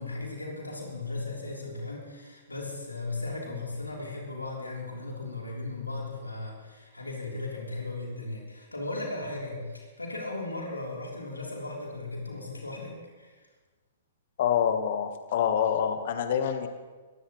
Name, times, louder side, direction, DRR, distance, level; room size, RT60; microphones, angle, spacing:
voice 1, 0.0-13.4, left 2 dB, 85° left, -2 dB, 3.6 m, -37 dB
voice 2, 14.4-16.7, left 8 dB, 55° left, 8 dB, 1.3 m, -26 dB
20.5 x 15.5 x 3.2 m, 1.3 s
figure-of-eight pair, 115°, 0 cm